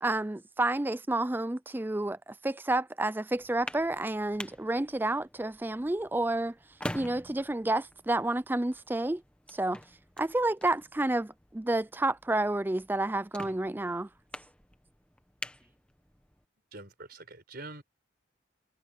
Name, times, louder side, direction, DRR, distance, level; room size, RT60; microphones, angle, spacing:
voice 1, 0.0-6.5 6.9-9.2 9.5-9.8 10.2-14.1, right 2 dB, 10° right, 0.3 m, -30 dB
sound 1, 3.4-16.4, left 1 dB, 5° left, 1.2 m, -47 dB
voice 2, 16.7-17.8, right 2 dB, 50° right, 5.3 m, -45 dB
head